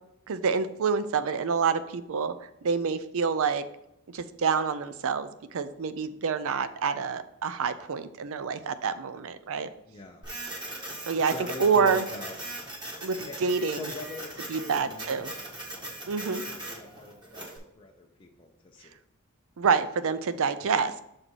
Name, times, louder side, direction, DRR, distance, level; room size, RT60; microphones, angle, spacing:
voice 1, 0.3-3.6 4.1-9.7 11.1-11.3 11.6-12.1 13.0-13.9 14.5-15.3 16.0-16.4 19.6-21.0, right 5 dB, 65° right, 13 dB, 0.5 m, -27 dB
voice 2, 9.9-10.3 11.3-12.4 13.2-15.4 16.2-18.9 20.6-20.7, left 2 dB, 25° left, 0 dB, 0.6 m, -43 dB
Printer, 10.2-17.6, right 1 dB, 20° right, 1.5 m, -40 dB
6.4 x 4.1 x 4.5 m, 0.81 s
head